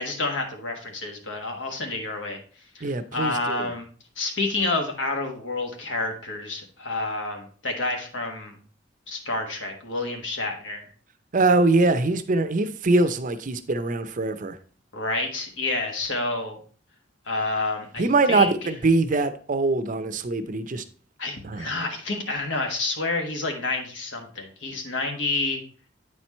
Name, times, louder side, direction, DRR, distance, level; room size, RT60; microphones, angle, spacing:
voice 1, 0.0-2.4 2.7-3.9 4.2-8.5 9.1-10.8 14.9-16.6 17.3-18.7 21.2-25.6, left 2 dB, 80° left, 1.5 m, -29 dB
voice 2, 2.8-3.7 11.3-14.6 18.0-20.8 21.4-21.7, right 3 dB, 40° right, 0.5 m, -23 dB
8.8 x 4.5 x 4.2 m
head